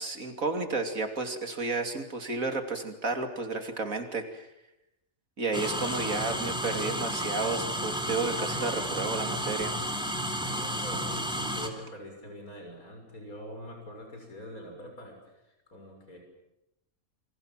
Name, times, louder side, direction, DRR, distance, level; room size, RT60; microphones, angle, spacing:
voice 1, 0.0-4.5 5.4-9.7, right 3 dB, 70° right, 6 dB, 3.2 m, -32 dB
sound 1, 5.5-11.7, equal, 5° right, 2.8 m, -32 dB
voice 2, 10.4-16.2, equal, 90° left, 3 dB, 7.1 m, -44 dB
28.5 x 25.0 x 7.5 m, 0.88 s
omnidirectional pair, 1.5 m